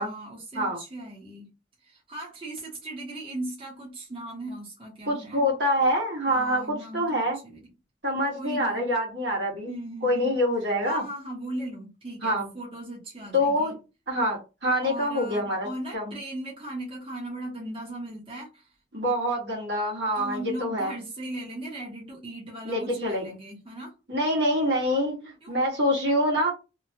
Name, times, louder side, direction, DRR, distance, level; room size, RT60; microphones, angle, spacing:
voice 1, 0.0-1.5 1.8-5.5 6.3-7.7 8.3-8.9 9.7-10.3 10.8-13.7 14.8-18.7 20.2-23.9 25.4-25.6, right 1 dB, 30° right, 1.0 m, -38 dB
voice 2, 5.1-7.4 8.0-9.7 10.0-11.0 12.2-12.5 13.3-13.8 14.1-15.7 15.9-16.1 18.9-20.9 22.6-23.3 24.1-26.5, equal, 65° right, 1.5 m, -26 dB
2.9 x 2.2 x 2.8 m
head